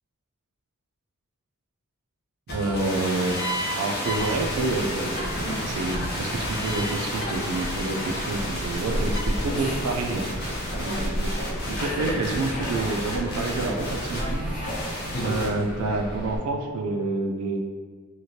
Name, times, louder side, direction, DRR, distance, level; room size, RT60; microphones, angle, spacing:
sound 1, 2.5-15.5, equal, 45° left, 0.5 m, -31 dB
voice 1, 2.5-3.4 3.8-5.2 5.6-10.3 10.8-11.3 11.6-14.5 15.2-17.6, right 2 dB, 80° right, 4 dB, 0.3 m, -28 dB
sound 2, 4.1-16.4, equal, 5° right, 0.5 m, -34 dB
sound 3, 9.5-10.5 11.7-12.9 14.2-15.2, left 1 dB, 85° left, 1.1 m, -39 dB
3.0 x 2.4 x 2.7 m, 1.5 s
head